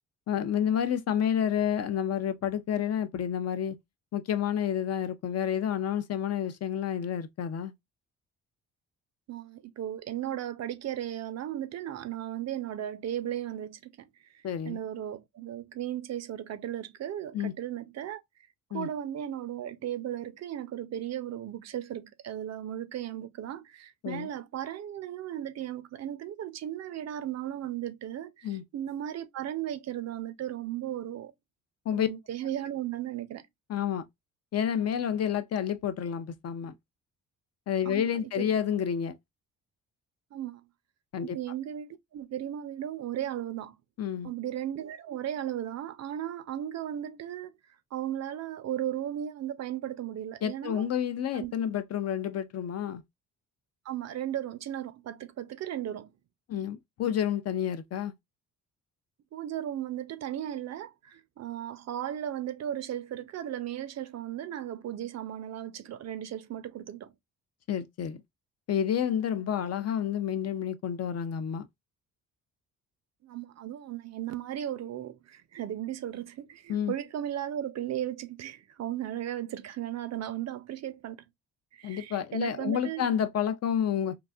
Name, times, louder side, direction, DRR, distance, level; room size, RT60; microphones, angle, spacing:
voice 1, 0.3-3.8 4.1-7.7 14.4-14.8 17.3-17.5 18.7-18.9 24.0-24.3 28.4-28.6 31.9-32.1 33.7-34.1 34.5-36.7 37.7-39.2 41.1-41.4 44.0-44.3 50.4-53.0 56.5-58.1 67.7-68.2 68.7-71.7 76.7-76.9 81.8-84.2, left 9 dB, 50° left, 0.5 m, -29 dB
voice 2, 9.3-14.1 14.3-18.2 18.7-31.3 31.9-33.4 37.9-38.2 40.3-40.6 41.3-43.7 44.2-47.5 47.9-50.9 51.3-51.5 53.9-56.1 59.3-67.1 73.2-81.2 81.7-83.1, right 11 dB, 55° right, 0.5 m, -36 dB
3.8 x 2.4 x 2.3 m
cardioid pair, 90°, 32 cm